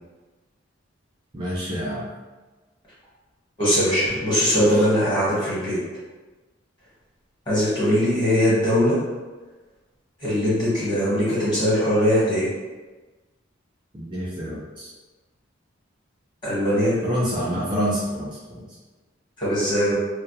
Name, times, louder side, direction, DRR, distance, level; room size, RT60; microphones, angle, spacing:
voice 1, 1.3-2.1 4.7-4.8 13.9-14.9 17.0-18.7, equal, 25° right, -7 dB, 0.4 m, -27 dB
voice 2, 3.6-5.8 7.5-9.0 10.2-12.5 16.4-17.0 19.4-19.9, equal, 25° left, -10 dB, 1.1 m, -21 dB
2.2 x 2.0 x 2.8 m, 1.2 s
head